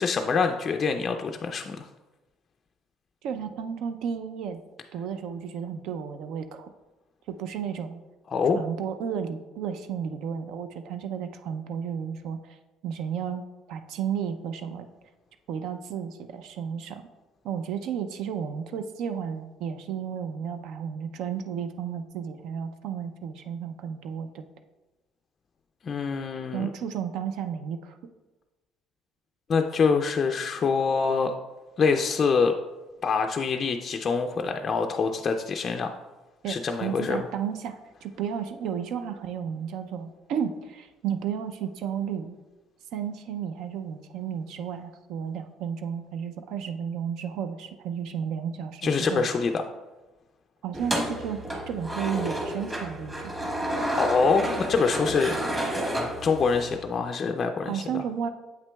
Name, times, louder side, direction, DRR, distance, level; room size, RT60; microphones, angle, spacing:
voice 1, 0.0-1.9 8.3-8.6 25.8-26.7 29.5-31.3 31.8-32.6 33.0-35.9 36.5-37.3 48.8-49.6 53.9-55.4 56.2-58.0, left 5 dB, 35° left, 4 dB, 0.3 m, -25 dB
voice 2, 3.2-4.6 4.9-6.7 7.3-8.0 8.5-12.6 12.8-13.4 13.7-14.9 15.5-17.1 17.4-24.5 26.5-28.0 36.4-42.3 42.9-49.3 50.6-53.4 57.7-58.3, right 8 dB, 75° right, 9 dB, 0.4 m, -33 dB
sound 1, 50.7-56.8, right 1 dB, 20° right, 1.2 m, -30 dB
7.6 x 5.8 x 2.2 m, 1.1 s
cardioid pair, 125°, 0 cm